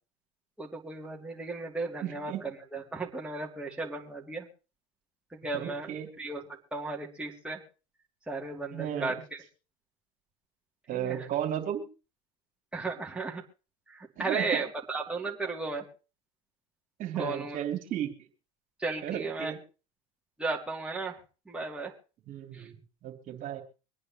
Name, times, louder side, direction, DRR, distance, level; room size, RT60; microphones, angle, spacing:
voice 1, 0.6-4.5 5.3-5.9 6.2-7.6 8.3-9.1 10.9-11.2 12.7-13.4 13.9-15.9 17.2-17.6 18.8-19.5 20.4-21.2 21.5-21.9 22.6-22.7, right 3 dB, 5° right, -2 dB, 2.6 m, -35 dB
voice 2, 2.0-2.4 5.5-6.1 8.7-9.2 10.9-11.9 14.2-14.6 17.0-18.1 19.0-19.6 22.3-23.6, right 10 dB, 45° right, 3 dB, 2.8 m, -34 dB
24.5 x 9.5 x 3.0 m, 0.33 s
hypercardioid pair, 90°, 19 cm